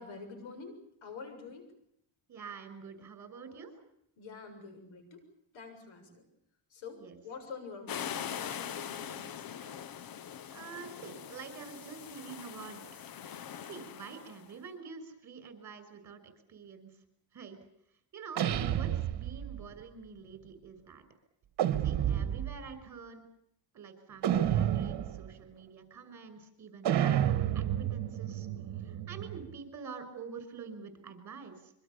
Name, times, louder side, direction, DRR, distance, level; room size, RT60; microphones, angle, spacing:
voice 1, 0.0-1.7 4.2-5.2 5.5-6.3 6.7-9.6, left 4 dB, 90° left, 7 dB, 7.1 m, -47 dB
voice 2, 2.3-3.7 7.0-7.2 10.5-13.0 13.6-16.9 17.3-17.6 18.1-21.0 21.8-23.3 23.7-28.5 28.8-31.7, right 5 dB, 40° right, 9 dB, 6.2 m, -47 dB
sound 1, 7.9-14.4, left 9 dB, 50° left, 1.0 m, -42 dB
sound 2, 18.3-19.6 21.6-22.7 24.2-25.3 26.8-29.5, right 10 dB, 60° right, 1.8 m, -30 dB
26.5 x 24.5 x 7.0 m, 0.73 s
cardioid pair, 135°, 46 cm